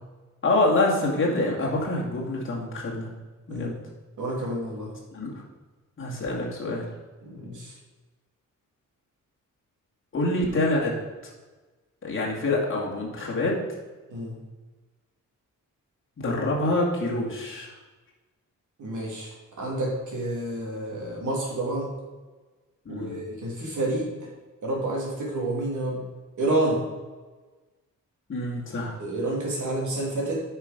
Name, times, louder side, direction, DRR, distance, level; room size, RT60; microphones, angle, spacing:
voice 1, 0.4-3.1 3.5-3.7 5.1-5.3 6.0-6.8 10.1-10.9 12.0-13.5 16.2-17.7 22.9-23.2 28.3-29.0, left 2 dB, 40° left, -3 dB, 2.3 m, -26 dB
voice 2, 4.2-4.9 7.2-7.7 14.1-14.3 18.8-19.3 19.6-21.9 22.9-24.3 24.6-26.0 26.4-26.8 29.0-30.4, right 1 dB, 65° right, -2 dB, 2.9 m, -29 dB
8.7 x 5.9 x 5.2 m, 1.3 s
wide cardioid pair, 165°, 32 cm